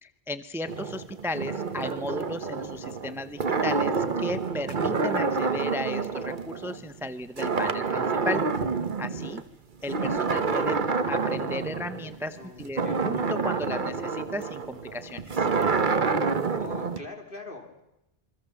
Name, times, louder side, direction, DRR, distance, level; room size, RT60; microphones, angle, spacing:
voice 1, 0.0-8.4 9.0-9.4 9.8-10.8 11.1-15.5, left 1 dB, 5° right, 11 dB, 0.8 m, -35 dB
sound 1, 0.7-7.1 7.4-9.4 9.8-17.0, right 4 dB, 50° right, 1.3 m, -28 dB
voice 2, 12.4-13.2 16.5-17.8, left 2 dB, 60° left, 4 dB, 3.1 m, -42 dB
28.5 x 23.5 x 7.1 m, 0.88 s
omnidirectional pair, 1.0 m